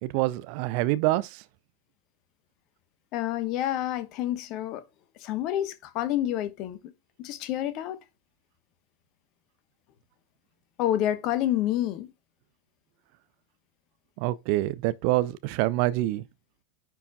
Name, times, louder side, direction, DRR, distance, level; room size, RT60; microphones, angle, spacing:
voice 1, 0.0-1.3 14.2-16.2, right 17 dB, 45° right, 0.5 m, -26 dB
voice 2, 3.1-4.8 5.2-6.9 7.2-8.0 10.8-12.1, left 12 dB, 40° left, 1.1 m, -28 dB
10.0 x 4.6 x 2.3 m
figure-of-eight pair, 90°, 0 cm